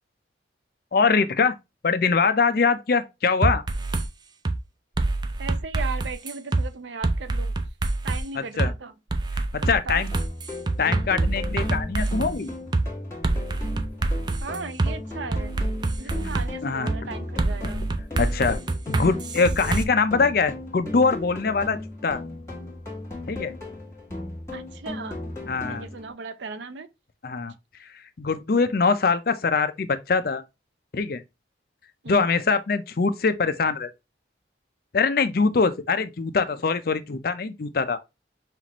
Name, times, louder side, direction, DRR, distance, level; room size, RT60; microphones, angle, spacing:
voice 1, 0.9-1.5 1.8-3.6 8.3-8.7 9.5-10.1 10.8-12.5 16.6-16.9 18.2-18.6 18.9-22.2 23.3-23.5 25.5-25.9 27.2-27.5 27.8-30.4 30.9-31.2 32.1-33.9 34.9-38.0, left 4 dB, 50° left, 0.5 m, -23 dB
sound 1, 3.4-4.1 4.4-4.6 5.0-6.6 7.0-8.2 8.6-8.7 9.1-12.3 12.7-12.9 13.2-14.9 15.3-16.5 16.9-17.0 17.4-19.8, right 2 dB, 25° right, 0.3 m, -25 dB
voice 2, 5.4-7.5 8.0-8.9 9.6-10.0 14.4-15.5 16.0-17.8 24.5-25.2 25.7-26.9 32.0-32.2, right 4 dB, 75° right, 0.5 m, -36 dB
sound 2, 10.1-26.1, left 2 dB, 15° left, 1.4 m, -36 dB
5.7 x 2.5 x 2.9 m
head